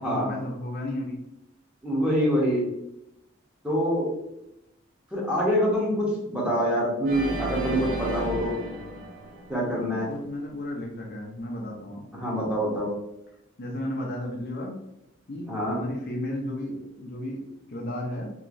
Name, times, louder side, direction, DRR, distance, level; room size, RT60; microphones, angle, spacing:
voice 1, 0.0-1.2 9.6-12.3 13.6-14.7 15.3-18.3, left 1 dB, 50° left, 0 dB, 0.5 m, -34 dB
voice 2, 1.8-2.6 3.6-4.1 5.1-8.5 9.5-10.1 12.1-12.9 15.5-15.8, equal, 5° right, -6 dB, 0.9 m, -25 dB
Organ, 7.0-10.2, right 1 dB, 40° right, 0.5 m, -34 dB
3.0 x 2.7 x 2.5 m, 0.85 s
head